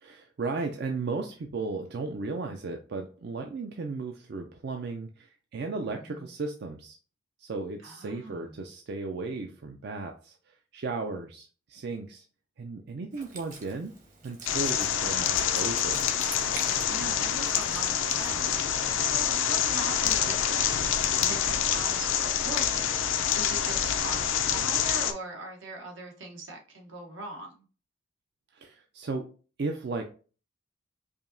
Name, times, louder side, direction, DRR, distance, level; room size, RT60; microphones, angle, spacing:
voice 1, 0.0-7.0 7.4-12.2 12.6-13.9 14.2-16.1 28.5-29.3 29.6-30.0, right 3 dB, 55° right, 4 dB, 0.4 m, -35 dB
voice 2, 5.9-6.3 7.8-8.5 16.9-23.0 23.3-27.7, right 2 dB, 85° right, 1 dB, 1.2 m, -41 dB
Wind instrument woodwind instrument, 13.1-18.6, right 3 dB, 40° right, 1.0 m, -46 dB
sound 1, 14.5-25.1, left 9 dB, 85° left, 0.5 m, -27 dB
4.9 x 2.8 x 2.6 m, 0.37 s
head